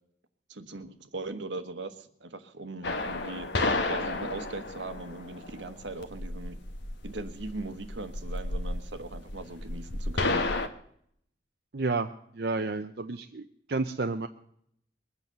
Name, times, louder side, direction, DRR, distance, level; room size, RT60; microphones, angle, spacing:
voice 1, 0.5-3.5 3.9-6.6 7.0-10.4, right 2 dB, 80° right, 9 dB, 1.3 m, -39 dB
sound 1, 2.8-10.7, left 2 dB, 75° left, 1.1 m, -32 dB
voice 2, 11.7-12.1 12.3-14.3, right 3 dB, 60° right, 6 dB, 0.6 m, -31 dB
21.5 x 8.2 x 6.7 m, 0.69 s
head